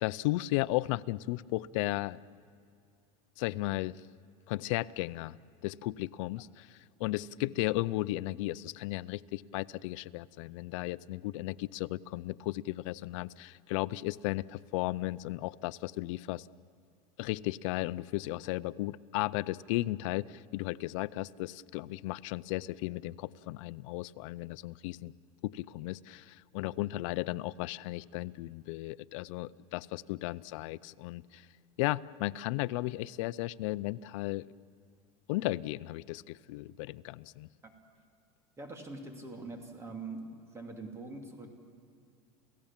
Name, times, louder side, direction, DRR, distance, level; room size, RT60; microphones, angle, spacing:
voice 1, 0.0-2.2 3.4-4.0 4.5-5.4 5.6-16.5 17.2-25.1 25.4-31.5 31.8-34.5 35.3-37.5, left 18 dB, 65° left, 16 dB, 0.5 m, -35 dB
voice 2, 38.6-41.5, right 3 dB, 15° right, 3 dB, 2.5 m, -43 dB
29.5 x 16.0 x 7.3 m, 2.3 s
supercardioid pair, 155°, 17 cm